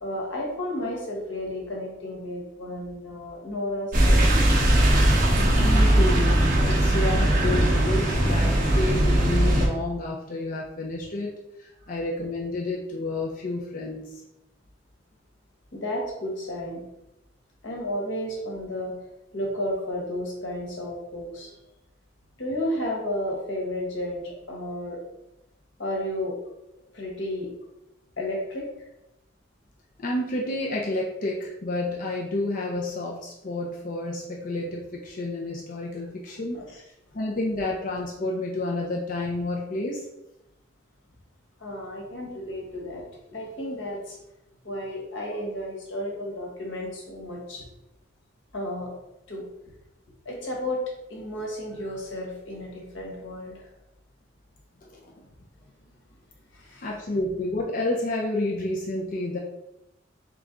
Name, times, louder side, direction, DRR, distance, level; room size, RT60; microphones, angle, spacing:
voice 1, 0.0-4.4 15.7-16.8 17.6-18.9 19.3-21.5 22.4-25.0 25.8-26.3 26.9-27.5 28.2-28.7 36.5-36.8 41.6-43.0 43.3-44.2 44.6-47.6 48.5-48.9 49.3-49.5 50.2-50.8 51.1-53.6 56.5-56.9, left 1 dB, 85° left, -2 dB, 1.3 m, -32 dB
sound 1, 3.9-9.7, right 1 dB, 45° right, 1.0 m, -20 dB
voice 2, 5.6-11.3 11.6-14.1 30.0-36.6 37.1-40.0 54.9-55.1 56.8-59.4, left 2 dB, 45° left, -2 dB, 0.5 m, -30 dB
3.5 x 3.3 x 3.7 m, 0.91 s
head